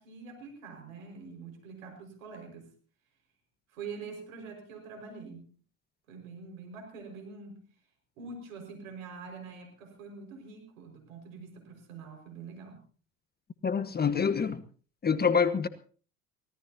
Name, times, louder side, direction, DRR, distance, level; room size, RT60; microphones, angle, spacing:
voice 1, 0.0-2.7 3.7-5.5 6.1-7.6 8.2-12.8, right 4 dB, 80° right, 4 dB, 5.4 m, -45 dB
voice 2, 13.6-14.6 15.0-15.7, left 6 dB, 25° left, 11 dB, 1.3 m, -26 dB
24.5 x 18.0 x 2.8 m, 0.40 s
hypercardioid pair, 80°, 40 cm